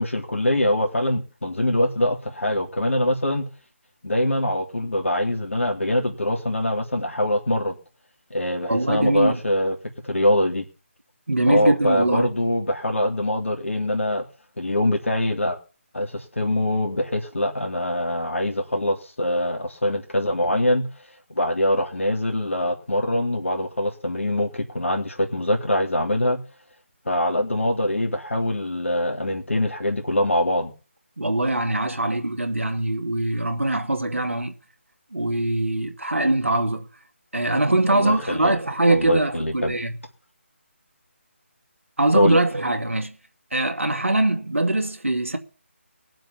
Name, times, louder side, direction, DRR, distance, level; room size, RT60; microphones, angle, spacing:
voice 1, 0.0-3.5 4.0-7.8 8.3-9.7 10.0-10.6 11.5-14.2 14.6-15.6 15.9-26.4 27.1-30.7 37.9-38.6 38.9-39.7 42.1-42.4, left 1 dB, 75° left, 3.1 m, -23 dB
voice 2, 8.7-9.4 11.3-12.3 31.2-34.5 35.1-36.9 37.3-39.9 42.0-43.1 43.5-45.4, right 1 dB, 75° right, 2.5 m, -22 dB
20.5 x 7.7 x 7.1 m
figure-of-eight pair, 155°, 7 cm